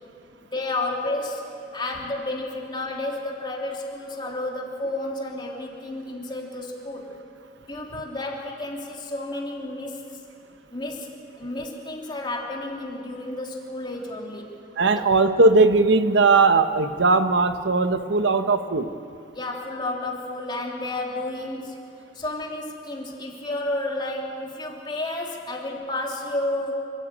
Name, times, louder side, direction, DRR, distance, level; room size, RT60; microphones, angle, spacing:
voice 1, 0.5-1.4 1.7-7.1 7.7-10.2 10.7-14.5 19.3-21.8 22.1-26.7, left 2 dB, 25° left, -1 dB, 3.1 m, -31 dB
voice 2, 14.8-18.9, right 3 dB, 80° right, 9 dB, 1.0 m, -19 dB
28.0 x 13.5 x 8.9 m, 2.5 s
head